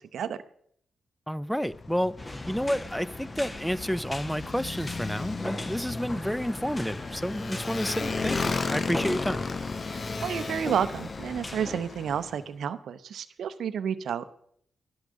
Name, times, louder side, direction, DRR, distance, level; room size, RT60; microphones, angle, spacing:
voice 1, 0.1-0.4 9.9-14.3, right 8 dB, 75° right, 13 dB, 0.7 m, -31 dB
voice 2, 1.3-9.5, equal, ahead, 19 dB, 0.6 m, -30 dB
Motorcycle, 1.7-12.4, left 4 dB, 50° left, 0.8 m, -35 dB
sound 1, 2.2-11.8, left 2 dB, 30° left, 1.5 m, -39 dB
11.5 x 9.7 x 6.3 m, 0.65 s
supercardioid pair, 40°, 0 cm